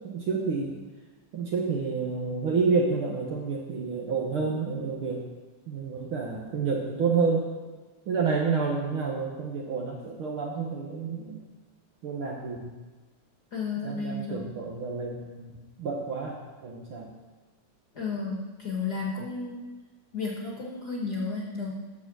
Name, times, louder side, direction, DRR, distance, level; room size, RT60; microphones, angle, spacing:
voice 1, 0.0-0.7 1.3-5.2 5.7-7.5 8.1-11.4 12.0-12.7 13.8-15.5 15.8-17.1, right 5 dB, 60° right, -1 dB, 1.6 m, -29 dB
voice 2, 13.5-14.4 17.9-19.6 20.1-21.7, left 4 dB, 40° left, -3 dB, 1.6 m, -32 dB
14.0 x 4.8 x 6.2 m, 1.3 s
omnidirectional pair, 3.4 m